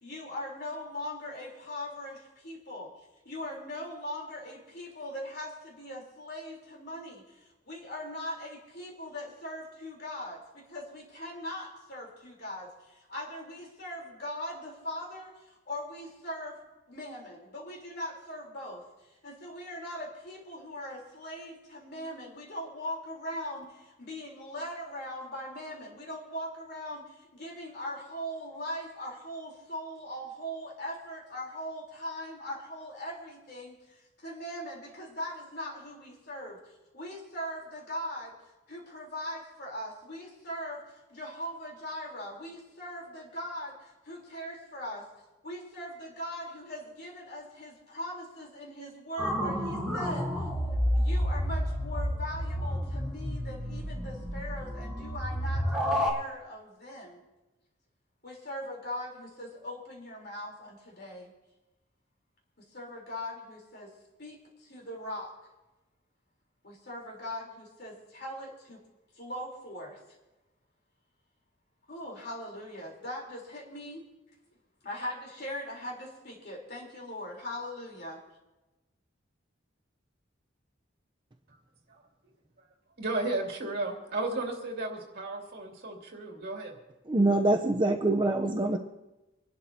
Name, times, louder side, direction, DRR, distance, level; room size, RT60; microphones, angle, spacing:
voice 1, 0.0-2.9 3.2-16.6 16.9-18.8 19.2-36.6 36.9-38.3 38.7-45.1 45.4-50.5 50.9-57.2 58.2-61.3 62.6-63.9 64.2-65.3 66.6-68.8 69.1-70.0 71.9-74.0 74.8-78.2, equal, 55° left, -1 dB, 3.7 m, -40 dB
sound 1, 49.2-56.1, equal, 5° right, 3.1 m, -30 dB
voice 2, 83.0-86.8, right 2 dB, 55° right, 0 dB, 2.7 m, -34 dB
voice 3, 87.1-88.8, right 2 dB, 25° right, 3 dB, 0.7 m, -25 dB
26.5 x 12.0 x 2.8 m, 1.0 s
head